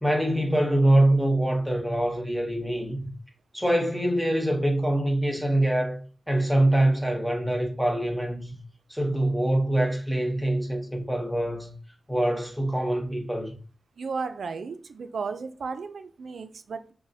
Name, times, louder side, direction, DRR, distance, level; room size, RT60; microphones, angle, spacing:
voice 1, 0.0-3.1 3.5-8.5 8.9-11.7 12.1-13.5, right 1 dB, ahead, 0.8 m, -24 dB
voice 2, 14.0-16.9, right 5 dB, 80° right, 0.3 m, -34 dB
6.1 x 2.0 x 2.7 m
wide cardioid pair, 90°, 0 cm